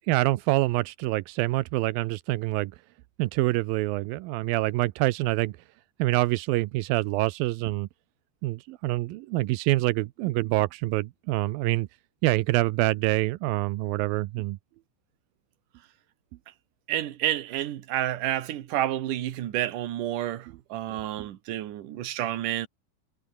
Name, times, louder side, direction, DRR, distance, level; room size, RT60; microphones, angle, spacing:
voice 1, 0.0-2.7 3.2-5.5 6.0-7.9 8.4-11.9 12.2-14.6 20.5-20.6 21.2-21.3, right 19 dB, 85° right, 2.1 m, -26 dB
voice 2, 16.9-22.7, right 13 dB, 60° right, 2.6 m, -30 dB
omnidirectional pair, 4.9 m